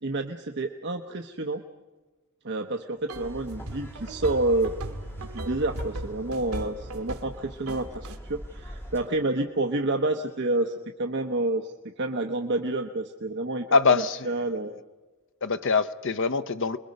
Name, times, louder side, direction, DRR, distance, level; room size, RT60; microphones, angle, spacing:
voice 1, 0.0-1.6 2.4-4.7 5.2-14.7, right 2 dB, 55° right, 4 dB, 1.1 m, -29 dB
sound 1, 3.1-9.1, equal, 10° left, 2.9 m, -42 dB
sound 2, 3.1-7.4 7.7-8.2, right 1 dB, 80° right, 1.6 m, -38 dB
voice 2, 13.7-14.2 15.4-16.8, left 4 dB, 60° left, 11 dB, 0.8 m, -23 dB
29.0 x 22.0 x 5.4 m, 1.2 s
head